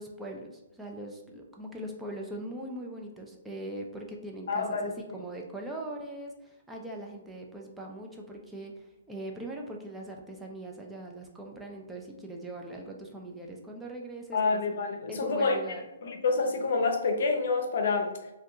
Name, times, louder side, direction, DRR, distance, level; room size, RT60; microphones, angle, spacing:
voice 1, 0.0-14.6 15.1-15.8, right 1 dB, 5° right, 0 dB, 0.4 m, -41 dB
voice 2, 4.5-4.9 14.3-15.6 16.0-18.1, left 4 dB, 60° left, 3 dB, 0.6 m, -27 dB
2.6 x 2.3 x 3.5 m, 0.98 s
hypercardioid pair, 135°, 0 cm